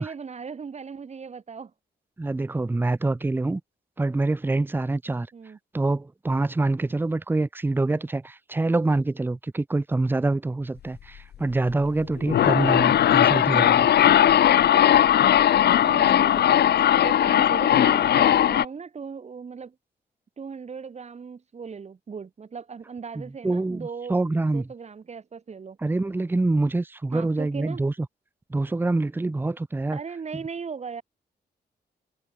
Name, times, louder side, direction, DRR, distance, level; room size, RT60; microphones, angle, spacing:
voice 1, 0.0-1.7 5.3-5.6 12.4-12.9 15.8-19.7 20.4-24.2 24.5-25.8 27.1-27.8 29.9-31.0, right 5 dB, 40° right, 5.6 m, -38 dB
voice 2, 2.2-3.6 4.0-5.3 5.7-13.9 23.2-24.7 25.8-27.9 28.5-30.0, right 2 dB, 10° right, 0.8 m, -25 dB
sound 1, 12.0-18.7, left 11 dB, 70° left, 0.6 m, -18 dB
wide cardioid pair, 175°, 18 cm